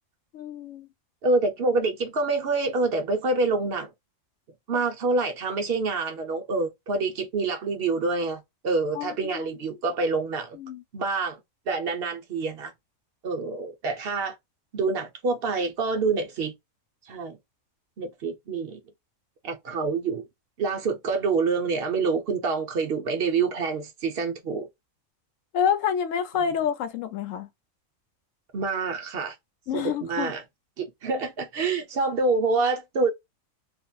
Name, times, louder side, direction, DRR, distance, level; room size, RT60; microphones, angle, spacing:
voice 1, 0.3-0.9 8.9-9.5 10.5-10.8 25.5-27.5 29.7-30.3, left 8 dB, 70° left, 1.0 m, -28 dB
voice 2, 1.2-3.9 4.7-10.6 10.9-11.4 11.7-12.7 13.2-14.4 14.7-16.5 17.1-17.4 18.0-18.8 19.4-20.2 20.6-24.7 28.5-29.3 29.7-30.4 30.8-33.1, right 3 dB, 55° right, 0.7 m, -26 dB
2.8 x 2.5 x 2.3 m
omnidirectional pair, 1.4 m